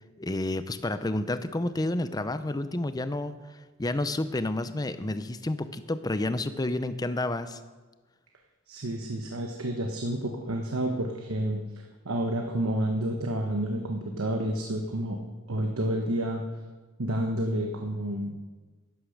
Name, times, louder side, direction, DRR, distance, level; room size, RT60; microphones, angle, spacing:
voice 1, 0.2-7.6, left 2 dB, 20° left, 12 dB, 0.5 m, -30 dB
voice 2, 8.7-15.2 15.5-16.4 17.0-18.3, right 1 dB, 90° right, 2 dB, 1.1 m, -30 dB
11.0 x 10.0 x 6.5 m, 1.3 s
head